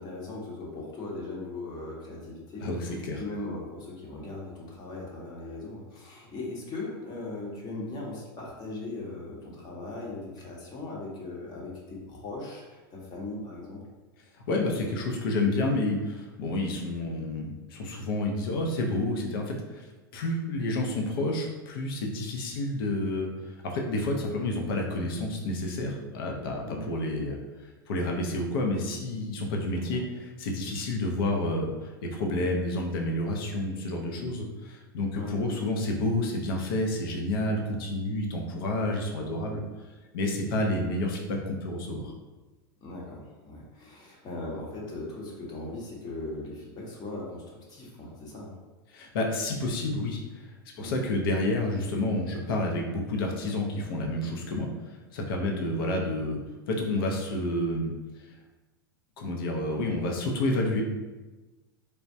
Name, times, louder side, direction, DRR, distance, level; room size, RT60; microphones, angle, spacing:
voice 1, 0.0-13.8 26.7-26.9 29.7-29.8 35.1-35.3 42.8-48.5 50.7-50.9 55.4-55.7, left 2 dB, 35° left, -3 dB, 0.9 m, -39 dB
voice 2, 2.6-3.2 14.5-19.8 20.1-23.3 23.6-27.4 27.9-30.0 30.4-39.6 40.1-42.1 48.9-50.4 50.8-54.7 55.1-56.4 56.7-57.9 59.2-60.9, left 1 dB, 70° left, 1 dB, 0.6 m, -29 dB
3.3 x 2.1 x 2.6 m, 1.2 s
hypercardioid pair, 105°, 12 cm